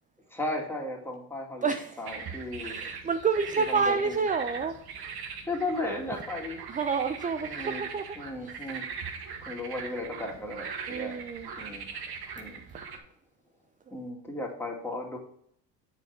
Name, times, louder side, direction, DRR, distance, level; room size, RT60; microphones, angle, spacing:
voice 1, 0.3-1.7 2.0-2.8 3.7-4.2 5.2-6.6 7.4-7.8 8.2-8.8 9.5-11.2 11.6-11.9 12.3-12.6 13.9-15.2, left 2 dB, 5° left, -1 dB, 2.2 m, -35 dB
voice 2, 1.6-2.1 2.6-4.9 6.7-8.5 10.9-11.5 13.9-14.0, right 5 dB, 20° right, 8 dB, 0.4 m, -29 dB
sound 1, 2.0-13.0, right 6 dB, 50° right, 1.2 m, -40 dB
6.9 x 3.9 x 5.7 m, 0.69 s
hypercardioid pair, 65°, 49 cm